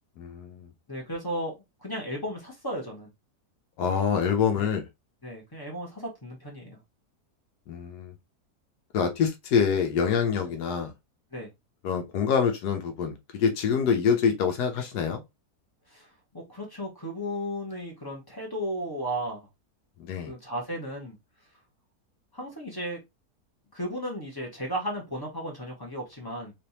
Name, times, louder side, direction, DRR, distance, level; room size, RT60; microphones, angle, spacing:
voice 1, 0.2-0.7 3.8-4.8 7.7-8.1 8.9-10.9 11.8-15.2 20.0-20.3, left 6 dB, 80° left, 1.2 m, -26 dB
voice 2, 0.9-3.1 4.6-4.8 5.2-6.8 11.3-11.5 15.9-19.5 20.2-21.2 22.3-23.0 23.7-26.5, equal, 15° left, 1.0 m, -35 dB
3.4 x 3.0 x 2.8 m
omnidirectional pair, 1.7 m